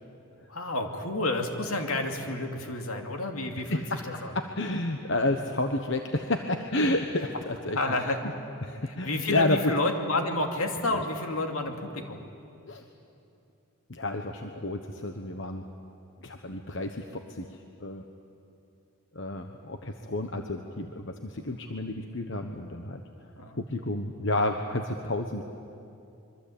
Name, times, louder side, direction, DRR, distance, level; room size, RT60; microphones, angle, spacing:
voice 1, 0.5-4.3 7.7-8.2 8.8-12.2 23.4-23.6, left 2 dB, 75° left, 3 dB, 2.7 m, -30 dB
voice 2, 3.7-7.8 8.6-9.6 10.9-11.0 12.7-12.8 13.9-15.6 16.2-17.5 17.8-18.0 19.1-23.0 23.6-25.4, left 2 dB, 55° left, 5 dB, 1.2 m, -30 dB
26.0 x 24.0 x 8.7 m, 2.6 s
head